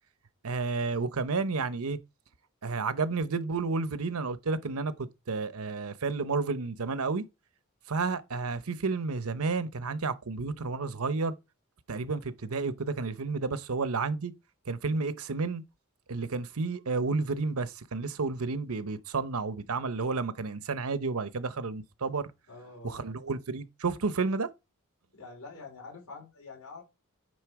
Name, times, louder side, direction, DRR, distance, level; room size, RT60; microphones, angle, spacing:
voice 1, 0.4-2.0 2.6-7.2 7.9-11.3 11.9-14.3 14.7-15.6 16.1-22.3 22.8-24.5, right 4 dB, 75° right, 0.8 m, -31 dB
voice 2, 22.5-23.0 25.1-26.8, left 4 dB, 90° left, 4.3 m, -46 dB
9.6 x 3.7 x 4.8 m
head